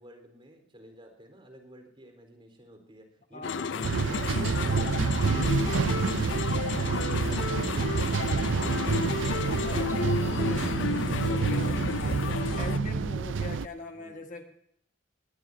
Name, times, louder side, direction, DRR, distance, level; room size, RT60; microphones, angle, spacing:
voice 1, 0.0-3.9 13.9-14.3, right 1 dB, 30° right, 4 dB, 4.2 m, -52 dB
voice 2, 3.3-3.9 4.3-4.6 6.7-7.1 9.5-10.7 11.1-12.2 12.5-14.4, left 2 dB, 40° left, 4 dB, 1.7 m, -41 dB
sound 1, 3.4-12.8, left 5 dB, 70° left, 0.5 m, -32 dB
sound 2, 3.8-13.7, right 5 dB, 75° right, 0.5 m, -28 dB
21.0 x 19.0 x 2.8 m, 0.70 s
head